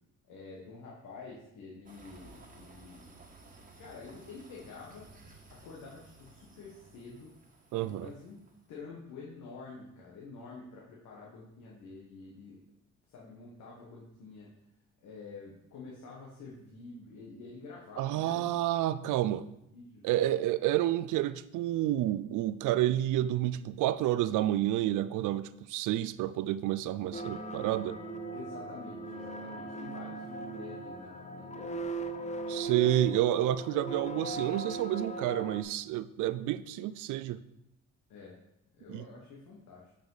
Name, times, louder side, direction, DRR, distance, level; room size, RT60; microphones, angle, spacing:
voice 1, 0.3-3.2 3.6-5.0 5.5-7.3 7.8-8.4 8.7-12.6 13.1-14.5 15.0-18.6 19.4-20.1 28.3-32.1 38.1-38.4 38.8-39.9, left 4 dB, 85° left, -3 dB, 1.5 m, -48 dB
sound 1, 1.9-8.8, right 3 dB, 25° right, 1.5 m, -56 dB
voice 2, 7.7-8.1 18.0-19.5 20.0-28.0 32.5-37.4 38.9-39.0, right 13 dB, 85° right, 15 dB, 0.5 m, -29 dB
sound 2, 27.1-35.6, right 2 dB, 25° left, 0.7 m, -39 dB
8.4 x 5.1 x 4.0 m, 0.82 s
cardioid pair, 90°, 30 cm